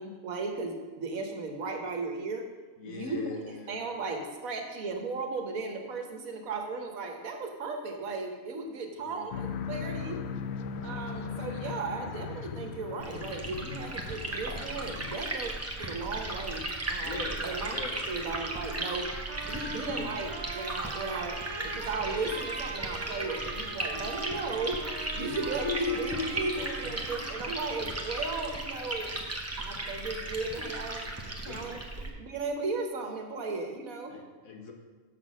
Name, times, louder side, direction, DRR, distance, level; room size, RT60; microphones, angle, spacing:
voice 1, 0.0-2.5 2.8-3.2 3.7-10.2 10.8-15.5 15.8-16.6 16.9-17.7 18.1-19.1 19.5-24.8 25.1-29.1 29.6-31.8 32.2-34.1, right 3 dB, 80° right, 4 dB, 1.5 m, -36 dB
voice 2, 2.8-3.7 9.0-9.4 17.0-18.1 19.6-20.1 25.3-27.0 31.0-31.1 31.4-31.6 34.1-34.7, left 4 dB, 80° left, 2 dB, 1.6 m, -38 dB
sound 1, 9.3-15.2, left 6 dB, 65° left, 0.7 m, -38 dB
Liquid, 13.0-32.1, right 2 dB, 15° right, 0.7 m, -36 dB
Trumpet, 18.7-27.7, right 4 dB, 45° right, 0.3 m, -42 dB
6.7 x 6.0 x 6.2 m, 1.3 s
omnidirectional pair, 1.4 m